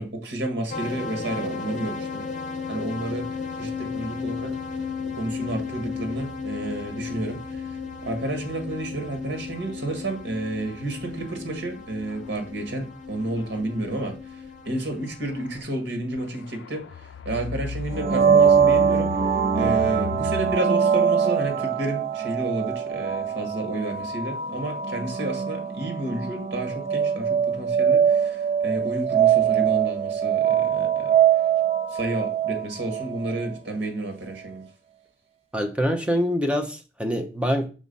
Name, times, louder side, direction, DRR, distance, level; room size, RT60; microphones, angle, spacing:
voice 1, 0.0-2.3 2.7-3.3 3.5-4.6 5.1-19.1 19.5-31.1 31.9-34.6, right 2 dB, 90° right, 1.7 m, -31 dB
sound 1, 0.7-15.6, left 5 dB, 45° left, 0.7 m, -35 dB
sound 2, 11.2-11.3 12.0-12.4 13.4-13.5 15.3-15.6 16.1-20.6, left 6 dB, 75° left, 0.3 m, -36 dB
sound 3, 17.9-33.6, right 8 dB, 35° right, 0.5 m, -23 dB
voice 2, 35.5-37.7, equal, 5° right, 0.8 m, -25 dB
6.3 x 3.8 x 5.4 m
head